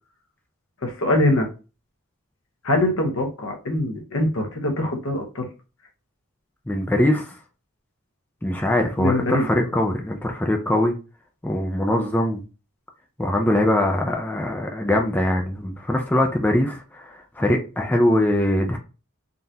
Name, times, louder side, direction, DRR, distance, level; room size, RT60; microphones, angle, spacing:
voice 1, 0.8-1.5 2.6-5.5 9.0-9.5, left 1 dB, 70° left, 1.0 m, -23 dB
voice 2, 6.7-7.4 8.4-10.9 11.4-12.4 13.2-18.8, left 1 dB, 10° left, 0.5 m, -22 dB
3.8 x 2.5 x 2.8 m
head